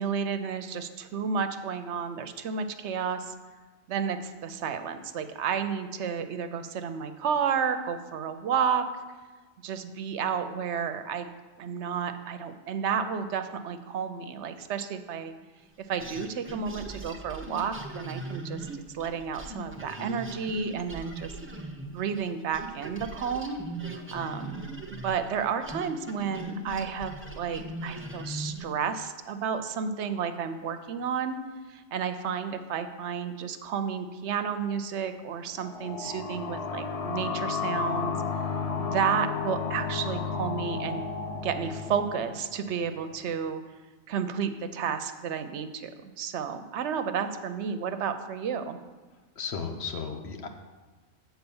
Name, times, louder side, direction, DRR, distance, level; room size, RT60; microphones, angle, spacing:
voice 1, 0.0-3.3 3.9-8.9 9.6-11.3 11.6-15.3 15.9-18.7 18.9-21.3 21.9-23.6 24.1-31.4 31.7-38.1 38.8-41.0 41.3-43.6 44.1-48.8, right 7 dB, 70° right, 9 dB, 0.9 m, -31 dB
sound 1, 16.0-22.3 22.5-28.8, right 2 dB, 15° right, 0.5 m, -39 dB
sound 2, 35.6-43.0, left 5 dB, 40° left, 0.5 m, -33 dB
voice 2, 49.4-50.5, left 5 dB, 65° left, 5 dB, 1.0 m, -34 dB
8.0 x 4.3 x 7.0 m, 1.3 s
omnidirectional pair, 1.2 m